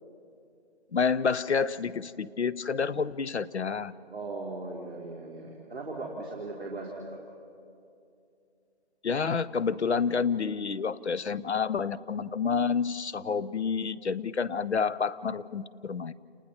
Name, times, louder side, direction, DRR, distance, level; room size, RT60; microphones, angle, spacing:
voice 1, 0.9-3.9 9.0-16.1, left 5 dB, 75° left, 17 dB, 0.8 m, -29 dB
voice 2, 4.1-7.2, right 2 dB, 5° right, -15 dB, 1.8 m, -38 dB
29.5 x 29.0 x 4.3 m, 2.5 s
figure-of-eight pair, 180°, 33 cm